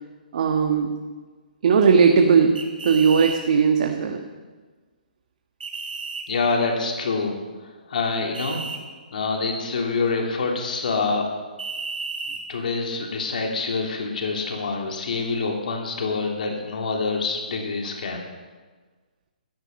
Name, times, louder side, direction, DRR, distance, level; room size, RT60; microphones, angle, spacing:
voice 1, 0.3-0.9 1.6-2.6 2.8-4.2, right 6 dB, 55° right, 4 dB, 1.5 m, -18 dB
sound 1, 2.6-3.4 5.6-6.3 8.3-8.8 11.6-12.4, right 4 dB, 75° right, 4.1 m, -32 dB
voice 2, 6.3-7.4 7.9-8.6 9.1-11.2 12.5-18.2, left 4 dB, 60° left, 1 dB, 3.1 m, -26 dB
17.0 x 14.0 x 5.5 m, 1.4 s
hypercardioid pair, 140°, 5 cm